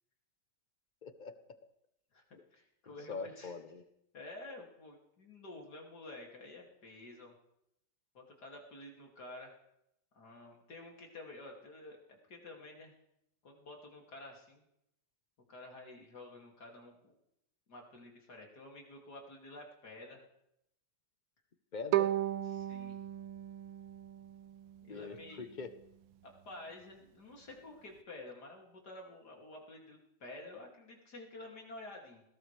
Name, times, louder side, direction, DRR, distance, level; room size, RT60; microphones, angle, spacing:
voice 1, 1.0-1.4 2.3-2.4 3.1-3.8 21.7-22.1 24.9-25.7, left 4 dB, 35° left, 9 dB, 0.8 m, -43 dB
voice 2, 2.5-3.5 4.1-7.3 8.1-9.5 10.1-12.9 13.4-14.6 15.5-17.1 17.7-20.2 22.4-23.0 24.8-25.5 26.2-32.2, left 2 dB, 60° left, 0 dB, 3.3 m, -50 dB
Bowed string instrument, 21.9-25.0, right 13 dB, 85° right, 1.5 m, -35 dB
20.0 x 17.5 x 3.4 m, 0.80 s
omnidirectional pair, 2.0 m